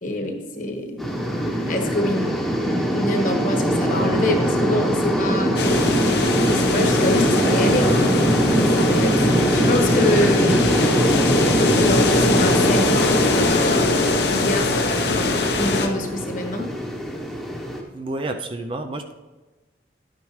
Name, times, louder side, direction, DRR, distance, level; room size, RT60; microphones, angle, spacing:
voice 1, 0.0-2.3 2.9-5.7 6.4-8.1 8.6-11.1 11.8-13.9 14.3-16.7, left 1 dB, 45° left, 3 dB, 1.2 m, -26 dB
sound 1, 1.0-17.8, equal, ahead, 1.0 m, -22 dB
sound 2, 5.6-15.9, left 3 dB, 65° left, 0.9 m, -22 dB
voice 2, 17.9-19.1, right 2 dB, 30° right, 6 dB, 0.4 m, -29 dB
10.5 x 8.9 x 3.2 m, 1.2 s
head